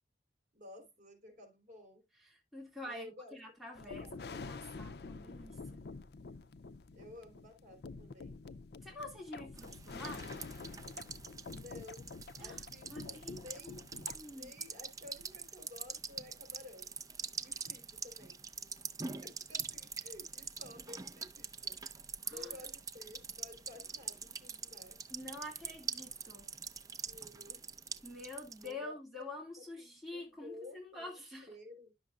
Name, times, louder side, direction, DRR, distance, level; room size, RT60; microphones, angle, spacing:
voice 1, 0.5-2.1 2.8-3.4 3.7-4.7 6.9-8.5 11.5-16.9 17.4-21.8 22.3-25.0 26.9-27.6 28.6-29.2 29.5-31.9, left 2 dB, 45° right, 3.4 m, -54 dB
voice 2, 2.2-5.8 8.8-10.3 12.4-12.6 12.9-13.8 14.1-14.5 22.2-22.5 25.1-26.5 28.0-31.5, left 2 dB, ahead, 2.3 m, -47 dB
sound 1, 3.7-14.2, left 4 dB, 65° left, 0.5 m, -48 dB
sound 2, 9.6-28.7, right 5 dB, 20° right, 0.5 m, -45 dB
11.5 x 6.5 x 2.4 m
head